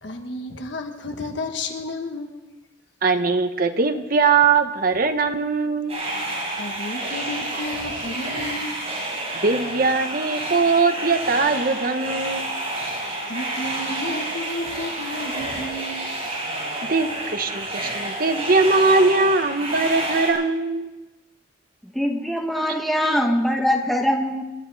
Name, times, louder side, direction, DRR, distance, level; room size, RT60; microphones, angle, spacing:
voice 1, 0.0-2.4 6.5-8.9 13.2-16.0, left 1 dB, 65° left, 5 dB, 1.4 m, -32 dB
voice 2, 3.0-6.0 9.4-12.5 16.9-20.9, right 4 dB, 45° right, 6 dB, 1.1 m, -21 dB
sound 1, 5.9-20.3, right 1 dB, 30° right, 5.3 m, -29 dB
voice 3, 21.8-24.4, equal, ahead, 2 dB, 1.0 m, -22 dB
28.5 x 11.5 x 4.1 m, 1.1 s
head